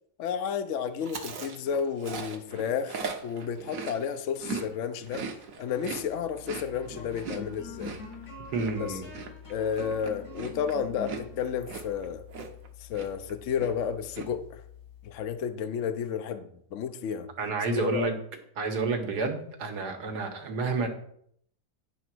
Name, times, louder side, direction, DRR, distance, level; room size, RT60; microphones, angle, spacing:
voice 1, 0.2-5.2 5.6-7.9 8.7-9.0 9.5-12.2 12.8-14.6 15.0-17.3 17.7-18.1, left 7 dB, 60° left, 9 dB, 0.8 m, -32 dB
Chewing mastication, 1.0-4.7 4.9-12.7 12.9-13.3 13.6-14.3, right 4 dB, 60° right, 1.3 m, -39 dB
sound 1, 5.8-15.4, left 5 dB, 80° left, 3.2 m, -46 dB
voice 2, 8.5-9.0 17.4-18.2 18.6-20.9, right 4 dB, 75° right, 4 dB, 1.8 m, -30 dB
10.0 x 3.8 x 6.1 m, 0.67 s
omnidirectional pair, 1.7 m